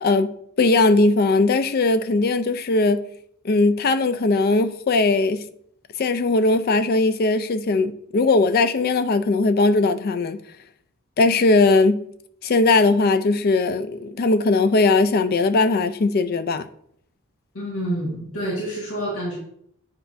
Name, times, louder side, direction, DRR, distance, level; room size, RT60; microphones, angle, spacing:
voice 1, 0.0-3.1 3.4-5.5 6.0-10.4 11.2-12.1 12.4-16.7, left 3 dB, 45° left, 0.4 m, -19 dB
voice 2, 17.5-19.4, right 1 dB, 85° left, 1.8 m, -28 dB
8.0 x 5.0 x 2.6 m
head